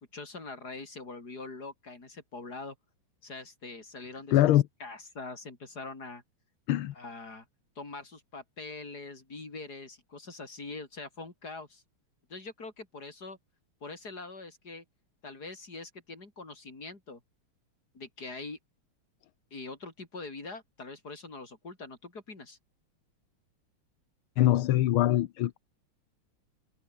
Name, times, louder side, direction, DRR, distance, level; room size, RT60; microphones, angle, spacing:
voice 1, 0.0-2.7 3.2-4.4 4.8-6.2 6.9-7.5 7.7-11.8 12.3-13.4 13.8-14.8 15.2-17.2 17.9-18.6 19.5-22.6, left 3 dB, 45° left, 5.1 m, -43 dB
voice 2, 4.3-4.6 6.7-6.9 24.4-25.6, left 13 dB, 75° left, 1.7 m, -23 dB
omnidirectional pair, 2.4 m